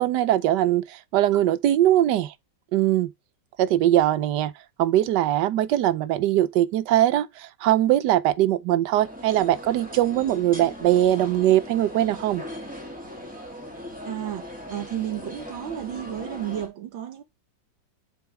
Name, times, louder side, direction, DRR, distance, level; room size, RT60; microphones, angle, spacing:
voice 1, 0.0-2.3 2.7-3.1 3.6-4.5 4.8-12.4, right 13 dB, 70° right, 1.2 m, -21 dB
sound 1, 8.9-16.7, left 1 dB, 5° right, 2.5 m, -39 dB
voice 2, 14.0-14.4 14.7-17.2, right 11 dB, 90° right, 1.9 m, -32 dB
7.3 x 5.8 x 3.3 m
omnidirectional pair, 2.0 m